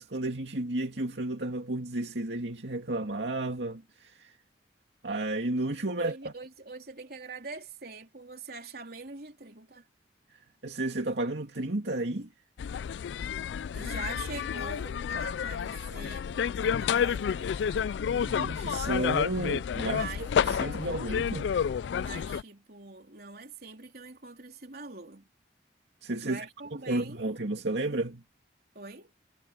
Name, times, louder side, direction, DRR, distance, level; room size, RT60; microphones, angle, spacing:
voice 1, 0.0-4.3 5.0-6.2 10.6-12.3 18.0-20.0 20.4-21.6 26.0-26.5 26.9-28.2, right 2 dB, 80° right, 2.4 m, -32 dB
voice 2, 6.0-9.9 13.7-18.0 19.8-20.3 21.9-25.3 26.2-27.3 28.7-29.1, right 4 dB, 60° right, 3.8 m, -44 dB
sound 1, 12.6-22.4, left 7 dB, 85° left, 0.3 m, -30 dB
head